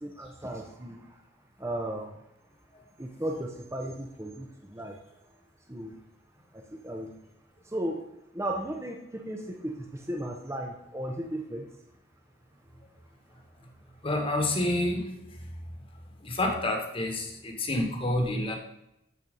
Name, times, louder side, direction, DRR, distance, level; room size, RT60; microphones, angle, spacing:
voice 1, 0.0-1.2 1.6-2.1 3.0-5.0 5.7-6.0 6.5-7.1 7.6-8.0 8.3-11.7, right 1 dB, 15° right, 1 dB, 0.9 m, -35 dB
voice 2, 14.0-15.0 16.3-17.3 17.6-18.6, left 1 dB, 30° left, 3 dB, 1.6 m, -27 dB
12.5 x 4.7 x 5.3 m, 0.83 s
head